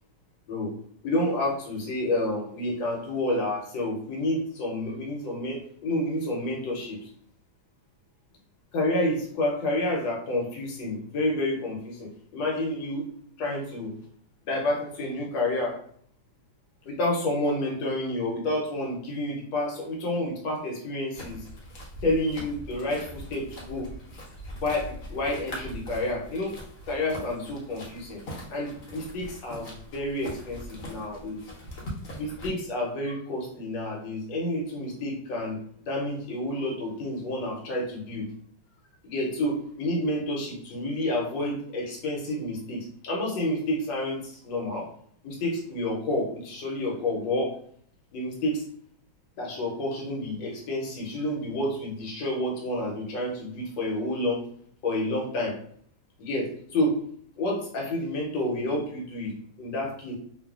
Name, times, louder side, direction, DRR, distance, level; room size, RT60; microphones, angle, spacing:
voice 1, 1.0-7.1 8.7-13.1 13.4-13.9 14.5-15.8 16.8-21.5 22.0-23.9 24.6-26.5 26.9-28.2 28.5-31.4 32.2-35.6 35.9-38.3 39.0-44.9 45.2-47.5 48.1-48.6 49.4-54.4 54.8-55.6 56.2-57.0 57.4-60.2, left 1 dB, 75° left, -2 dB, 1.3 m, -29 dB
sound 1, 21.1-32.5, equal, 55° left, 0.9 m, -41 dB
3.0 x 2.3 x 2.3 m, 0.63 s
omnidirectional pair, 2.1 m